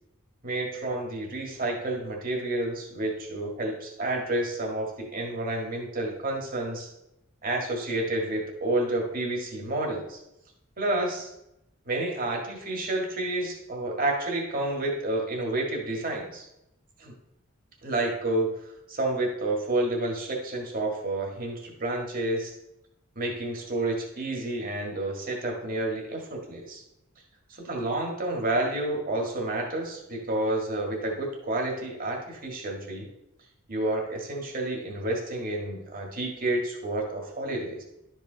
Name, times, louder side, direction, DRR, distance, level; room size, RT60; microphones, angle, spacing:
voice 1, 0.4-6.9 7.4-10.2 10.8-11.3 11.8-16.5 17.0-17.1 17.8-18.5 18.9-22.5 23.1-26.8 27.5-33.1 33.7-37.8, right 2 dB, 40° right, 1 dB, 1.8 m, -30 dB
12.0 x 5.0 x 3.9 m, 0.87 s
head